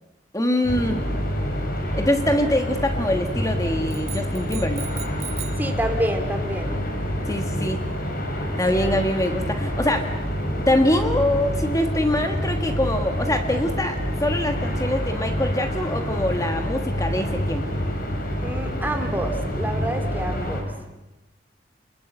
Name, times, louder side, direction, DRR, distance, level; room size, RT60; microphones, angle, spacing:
voice 1, 0.3-1.0 1.9-4.8 7.3-7.8 8.6-10.1 10.7-14.0 14.2-17.6, left 1 dB, 20° left, 5 dB, 1.5 m, -24 dB
sound 1, 0.6-20.6, equal, 50° left, 4.5 m, -27 dB
sound 2, 3.9-5.7, right 10 dB, 35° right, 1.5 m, -38 dB
voice 2, 5.6-6.7 18.4-20.7, right 1 dB, 10° right, 4 dB, 2.7 m, -28 dB
28.0 x 21.0 x 8.1 m, 1.0 s
head